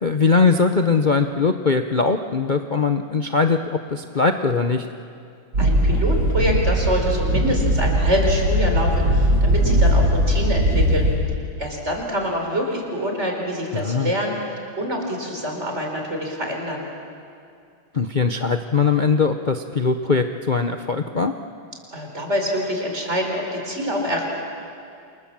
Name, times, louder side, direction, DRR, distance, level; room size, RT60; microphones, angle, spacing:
voice 1, 0.0-3.6 3.9-4.9 13.7-14.1 17.9-21.3, left 4 dB, 70° left, 5 dB, 0.4 m, -20 dB
sound 1, 5.5-11.1, equal, 60° right, 5.3 m, -19 dB
voice 2, 5.6-11.1 11.6-14.4 14.8-16.8 21.9-24.2, equal, 35° right, 1 dB, 4.7 m, -25 dB
28.5 x 27.5 x 7.5 m, 2.4 s
omnidirectional pair, 2.2 m